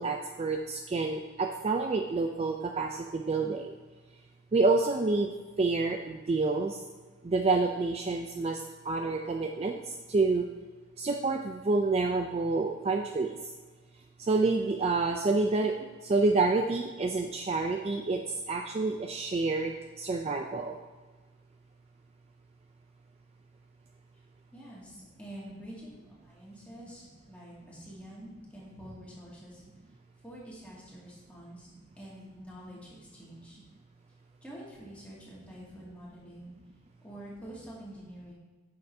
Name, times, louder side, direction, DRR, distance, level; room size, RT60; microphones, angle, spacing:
voice 1, 0.0-3.7 4.5-5.3 5.6-6.8 7.2-9.8 10.1-10.4 11.0-13.4 14.2-15.7 16.0-18.2 18.5-20.8, right 3 dB, 30° right, 4 dB, 0.3 m, -28 dB
voice 2, 24.5-29.7 30.2-31.7 32.0-33.6 34.4-36.5 37.0-38.3, equal, 5° left, -7 dB, 2.1 m, -47 dB
9.4 x 6.6 x 2.7 m, 1.3 s
head